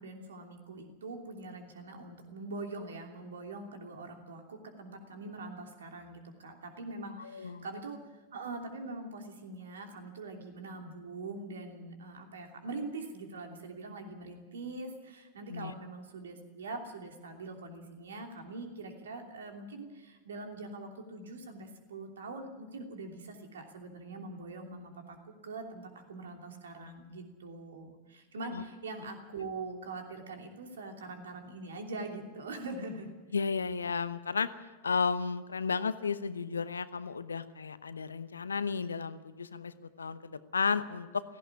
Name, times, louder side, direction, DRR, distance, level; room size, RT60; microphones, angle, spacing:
voice 1, 0.0-8.0 8.3-33.1, right 2 dB, 65° right, 4 dB, 3.0 m, -43 dB
voice 2, 7.2-7.6 15.5-15.7 28.5-28.6 33.3-34.5 34.8-41.2, left 5 dB, 75° left, 14 dB, 0.9 m, -33 dB
17.0 x 16.0 x 9.7 m, 1.2 s
figure-of-eight pair, 90°, 0 cm